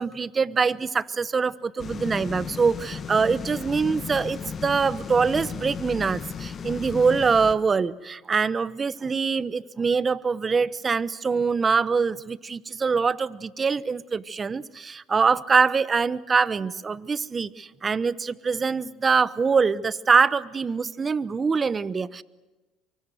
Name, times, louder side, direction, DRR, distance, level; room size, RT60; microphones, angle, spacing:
voice 1, 0.0-22.2, right 5 dB, 30° right, 18 dB, 1.0 m, -24 dB
sound 1, 1.8-7.6, left 6 dB, 40° left, 1.4 m, -35 dB
24.5 x 24.0 x 7.9 m, 1.1 s
supercardioid pair, 80°, 0 cm